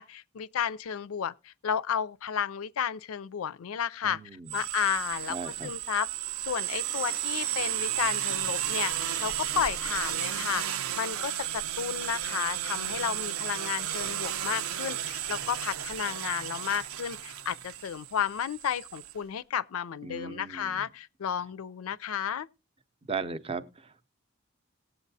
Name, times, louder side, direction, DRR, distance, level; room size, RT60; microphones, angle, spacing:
voice 1, 0.0-4.2 4.5-6.1 6.4-22.5, left 8 dB, 80° left, 0.4 m, -32 dB
voice 2, 4.0-4.6 5.3-5.7 20.0-20.9 23.0-24.1, right 4 dB, 25° right, 0.5 m, -37 dB
sound 1, 4.5-19.1, right 11 dB, 80° right, 0.6 m, -33 dB
18.5 x 7.8 x 2.7 m
head